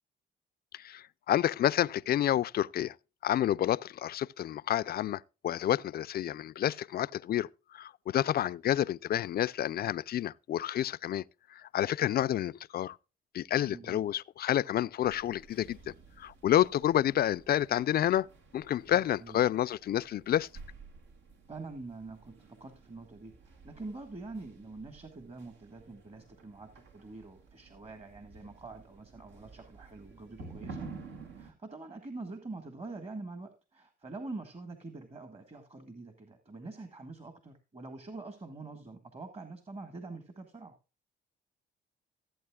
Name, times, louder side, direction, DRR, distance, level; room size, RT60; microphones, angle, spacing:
voice 1, 0.7-2.9 3.2-11.2 11.6-13.0 13.3-18.3 18.5-20.5, left 11 dB, 50° left, 0.4 m, -29 dB
voice 2, 13.6-14.0 18.9-19.4 21.5-30.9 31.4-40.7, right 3 dB, 30° right, 1.6 m, -45 dB
sound 1, 15.0-31.5, right 4 dB, 75° right, 1.9 m, -52 dB
15.0 x 8.3 x 2.3 m
cardioid pair, 90°, 20 cm